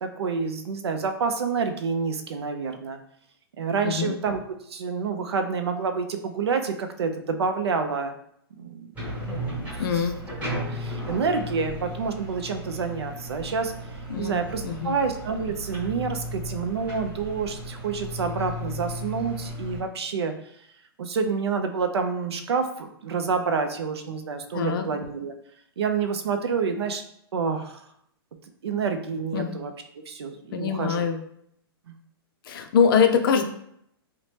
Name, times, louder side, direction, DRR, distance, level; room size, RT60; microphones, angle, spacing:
voice 1, 0.0-3.0 3.6-4.4 4.7-8.2 8.6-8.9 9.2-9.5 10.5-13.7 14.2-20.3 21.0-25.3 25.8-27.0 27.3-27.8 28.6-29.7 30.1-31.0 31.9-32.0, right 5 dB, 90° right, 6 dB, 0.4 m, -28 dB
voice 2, 3.8-4.2 9.8-10.2 14.1-15.0 24.5-24.9 29.3-29.6 30.5-31.2 32.5-33.4, left 6 dB, 60° left, 6 dB, 0.4 m, -23 dB
sound 1, 8.9-19.8, equal, 10° right, 1.0 m, -35 dB
2.8 x 2.1 x 3.2 m, 0.72 s
hypercardioid pair, 135°, 13 cm